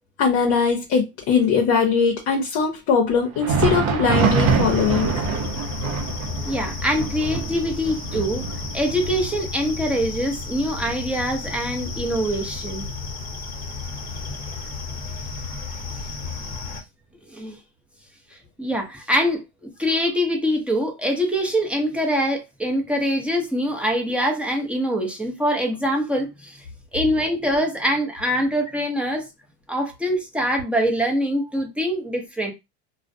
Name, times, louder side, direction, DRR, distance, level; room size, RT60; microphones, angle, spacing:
voice 1, 0.2-5.3, left 6 dB, 55° left, 0.7 m, -21 dB
Thunder, 3.2-12.7 13.0-13.2 13.9-14.1 15.1-15.2, right 5 dB, 50° right, 0.6 m, -26 dB
sound 1, 4.1-16.8, left 4 dB, 25° left, 1.0 m, -33 dB
voice 2, 6.4-8.4 8.7-12.8 17.3-17.6 18.6-19.4 19.8-26.6 26.9-29.3 29.7-32.5, equal, 5° right, 0.6 m, -24 dB
2.4 x 2.0 x 2.5 m
supercardioid pair, 110°, 32 cm